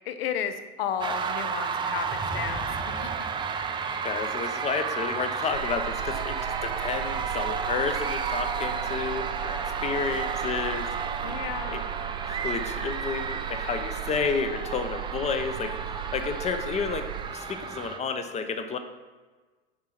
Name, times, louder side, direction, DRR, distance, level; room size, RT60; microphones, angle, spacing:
voice 1, 0.1-2.6 3.0-3.3 11.2-11.8, left 8 dB, 60° left, 10 dB, 0.8 m, -33 dB
sound 1, 1.0-18.0, right 6 dB, 15° right, 0.5 m, -32 dB
voice 2, 3.9-10.9 11.7-11.8 12.2-17.1 17.3-18.8, left 5 dB, 20° left, 8 dB, 0.8 m, -31 dB
sound 2, 5.5-17.3, right 12 dB, 65° right, 0.6 m, -38 dB
9.6 x 4.8 x 4.4 m, 1.3 s
figure-of-eight pair, 80°, 33 cm